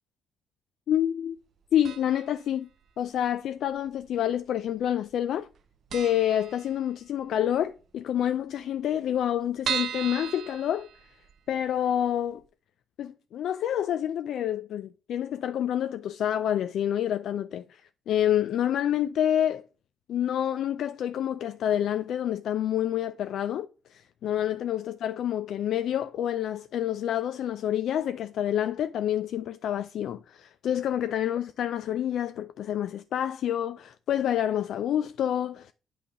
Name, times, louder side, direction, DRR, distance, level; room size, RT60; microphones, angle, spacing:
voice 1, 0.9-1.4 1.7-2.7 3.0-5.5 5.9-10.9 11.5-12.4 13.0-17.8 18.1-19.6 20.1-35.7, left 10 dB, 75° left, 0.3 m, -28 dB
sound 1, 1.8-2.4 2.6-2.7 3.7-4.4 4.7-4.8 5.1-5.2 5.5-5.6 5.9-7.2 7.6-7.7 8.0-8.1 8.3-8.4 8.9-11.5 11.9-12.0 12.4-12.5, right 8 dB, 60° right, 0.5 m, -36 dB
8.5 x 3.3 x 5.5 m
cardioid pair, 90°, 0 cm